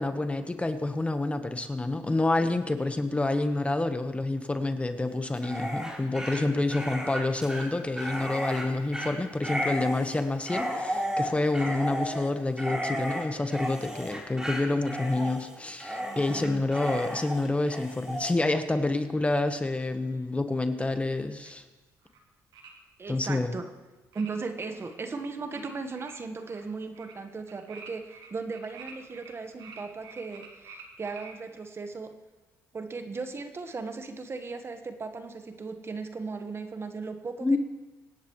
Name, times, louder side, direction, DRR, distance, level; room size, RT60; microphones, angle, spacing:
voice 1, 0.0-21.6 23.1-23.5 37.4-37.6, left 2 dB, 15° left, 8 dB, 1.2 m, -28 dB
Dog, 5.3-18.3, equal, 10° right, 4.0 m, -34 dB
voice 2, 16.0-16.6 23.0-23.6 24.1-32.2 32.7-37.6, right 4 dB, 35° right, 7 dB, 1.3 m, -37 dB
sound 1, 22.0-22.2 22.5-22.7 24.1-24.3 24.7-24.9 25.5-25.7 25.9-26.6 26.9-27.1 27.5-29.3 29.6-31.3, right 5 dB, 75° right, 2.4 m, -48 dB
25.0 x 10.5 x 3.2 m, 1.2 s
supercardioid pair, 80°, 8 cm